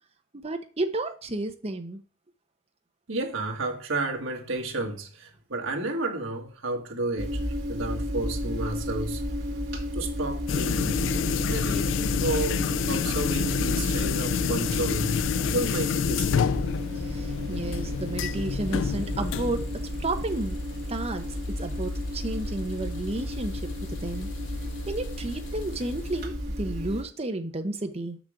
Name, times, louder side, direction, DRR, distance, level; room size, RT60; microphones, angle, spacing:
voice 1, 0.3-2.0 17.1-20.6 20.9-23.6 23.9-24.3 24.9-28.2, right 2 dB, 30° right, 0.9 m, -32 dB
voice 2, 3.1-7.4 7.7-9.2 9.9-11.0 11.5-15.2 15.5-16.5, right 2 dB, 75° right, 1.6 m, -31 dB
sound 1, 7.2-27.0, equal, 55° right, 2.0 m, -32 dB
sound 2, 10.5-26.3, left 7 dB, 65° left, 0.3 m, -30 dB
6.2 x 6.1 x 4.9 m
head